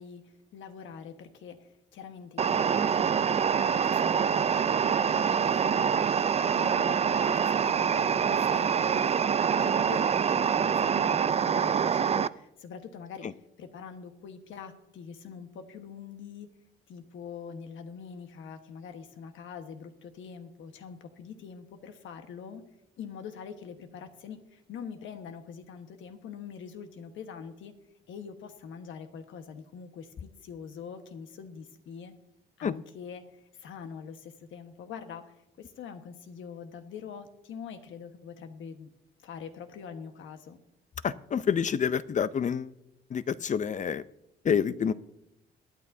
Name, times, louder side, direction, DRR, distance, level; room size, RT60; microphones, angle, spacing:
voice 1, 0.0-6.1 6.5-9.2 9.5-16.5 16.9-22.6 23.0-27.7 28.1-32.1 32.6-38.9 39.2-40.6, left 6 dB, 75° left, 7 dB, 1.4 m, -44 dB
sound 1, 2.4-12.3, right 7 dB, 30° right, 0.4 m, -25 dB
voice 2, 41.0-42.7 43.1-44.0 44.4-44.9, left 7 dB, 40° left, 16 dB, 0.6 m, -27 dB
22.5 x 9.4 x 2.7 m, 0.82 s
cardioid pair, 90°, 20 cm